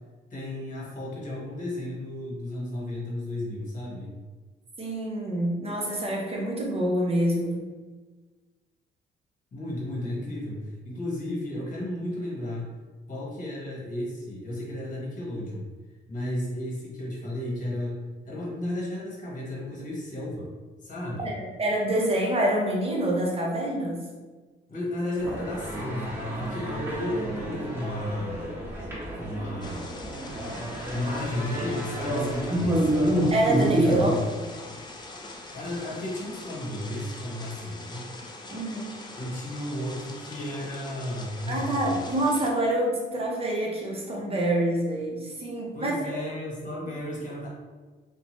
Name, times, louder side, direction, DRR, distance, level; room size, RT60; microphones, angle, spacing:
voice 1, 0.3-4.1 9.5-12.8 13.1-15.7 16.1-20.5 20.8-21.3 24.7-28.5 29.1-30.2 30.9-33.1 33.8-34.2 35.5-38.1 39.1-42.0 45.7-47.5, left 1 dB, 40° left, -4 dB, 1.1 m, -34 dB
voice 2, 4.8-7.6 21.2-24.0 33.3-34.5 38.5-39.0 41.5-46.2, right 1 dB, 30° right, -2 dB, 0.8 m, -27 dB
sound 1, 25.2-34.1, right 1 dB, 10° right, 1.3 m, -28 dB
sound 2, 29.6-42.5, left 2 dB, 20° left, 0.4 m, -43 dB
2.7 x 2.2 x 3.0 m, 1.3 s
cardioid pair, 90°, 20 cm